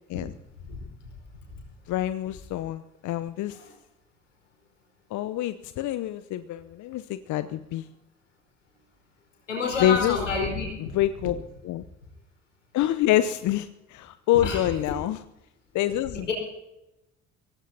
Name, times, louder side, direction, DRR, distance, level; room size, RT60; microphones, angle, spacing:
voice 1, 1.9-3.6 5.1-7.9 9.8-10.2 10.9-11.4 11.6-11.8 12.7-15.2 15.7-16.3, left 13 dB, 55° left, 12 dB, 0.8 m, -26 dB
voice 2, 9.5-10.9 14.4-14.7 16.3-16.4, left 4 dB, 85° left, 0 dB, 4.7 m, -28 dB
24.0 x 17.5 x 2.8 m, 0.91 s
figure-of-eight pair, 50°, 36 cm